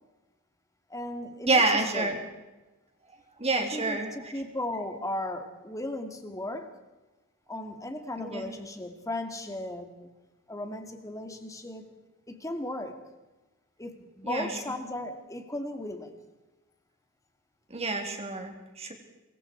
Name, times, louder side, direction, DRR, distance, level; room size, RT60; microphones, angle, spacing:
voice 1, 0.9-2.2 3.5-6.7 7.5-10.1 10.5-11.9 12.3-13.0 13.8-16.1, left 1 dB, 15° left, 6 dB, 2.5 m, -36 dB
voice 2, 1.5-2.2 3.4-4.3 8.2-8.5 14.2-14.6 17.7-18.9, right 3 dB, 30° right, 3 dB, 3.7 m, -28 dB
26.0 x 22.5 x 4.8 m, 1.1 s
head